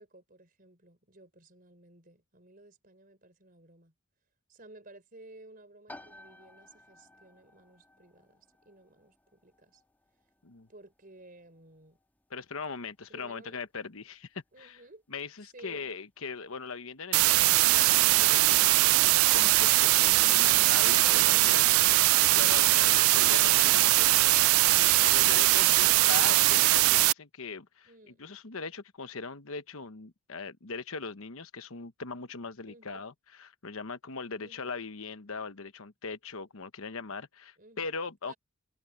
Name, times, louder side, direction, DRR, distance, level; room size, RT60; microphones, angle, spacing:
voice 1, 0.0-3.9 4.5-9.8 10.7-12.0 13.1-13.6 14.5-15.0 15.5-15.9 21.0-21.7 27.8-28.2 32.7-33.0 34.4-34.7 37.6-38.0 38.2-38.4, right 2 dB, 40° right, 4.5 m, -54 dB
sound 1, 5.9-20.4, left 1 dB, 10° left, 2.2 m, -58 dB
voice 2, 12.3-14.8 15.1-18.9 19.3-21.7 22.3-24.5 25.0-27.9 28.2-38.3, left 4 dB, 70° left, 1.1 m, -40 dB
sound 2, 17.1-27.1, right 19 dB, 70° right, 0.3 m, -21 dB
head